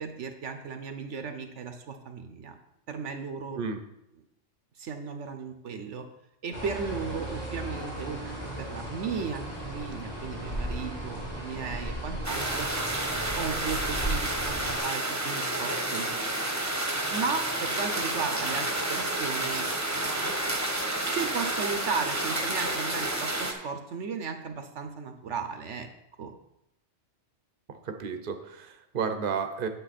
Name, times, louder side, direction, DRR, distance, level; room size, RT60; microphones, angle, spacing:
voice 1, 0.0-2.5 2.9-3.6 4.8-6.1 6.4-12.7 13.1-16.3 17.1-20.4 20.9-25.9 26.2-26.3, right 5 dB, 70° right, 7 dB, 1.1 m, -35 dB
sound 1, 6.5-14.8, equal, 30° left, 3.5 m, -36 dB
sound 2, 12.2-23.5, right 1 dB, 15° right, 1.1 m, -30 dB
voice 2, 27.7-29.7, right 6 dB, 45° right, 7 dB, 1.0 m, -32 dB
9.2 x 8.6 x 4.2 m, 0.84 s
omnidirectional pair, 1.3 m